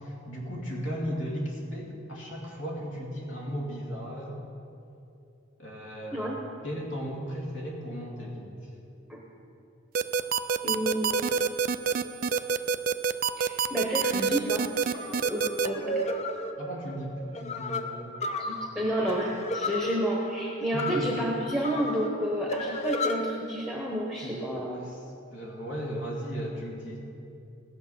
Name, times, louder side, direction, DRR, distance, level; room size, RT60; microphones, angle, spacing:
voice 1, 0.0-4.4 5.6-6.3 6.6-8.7 16.6-18.1 20.7-21.1 24.2-25.0 25.3-27.0, equal, 70° left, -3 dB, 2.3 m, -36 dB
voice 2, 6.1-6.4 9.1-9.2 10.6-11.5 13.4-14.7 15.2-16.1 18.4-24.8, equal, ahead, -3 dB, 1.0 m, -30 dB
sound 1, 9.9-15.7, right 6 dB, 45° right, 0.4 m, -25 dB
sound 2, 14.9-23.2, left 1 dB, 35° left, 0.7 m, -33 dB
18.0 x 7.1 x 5.6 m, 2.7 s
head